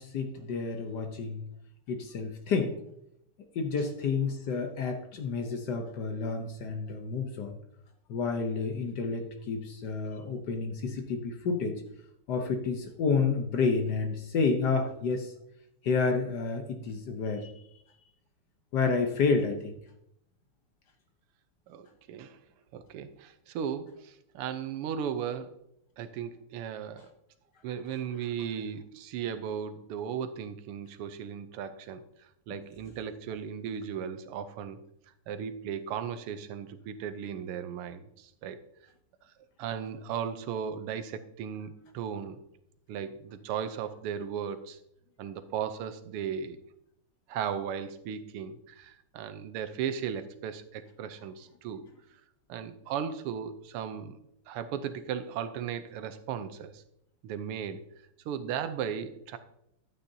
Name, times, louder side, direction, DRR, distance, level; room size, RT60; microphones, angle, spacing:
voice 1, 0.0-1.5 1.9-2.8 3.5-7.6 8.1-11.8 12.3-15.3 15.8-17.5 18.7-19.7, left 4 dB, 60° left, 6 dB, 1.2 m, -30 dB
voice 2, 21.7-22.4 22.7-25.6 26.0-27.1 27.6-34.8 35.3-38.6 39.6-42.4 42.9-44.8 45.2-46.6 47.3-51.9 52.5-54.2 54.5-56.8 57.2-57.8 58.2-59.4, right 8 dB, 85° right, 10 dB, 1.6 m, -36 dB
11.5 x 8.9 x 2.7 m, 0.78 s
omnidirectional pair, 2.4 m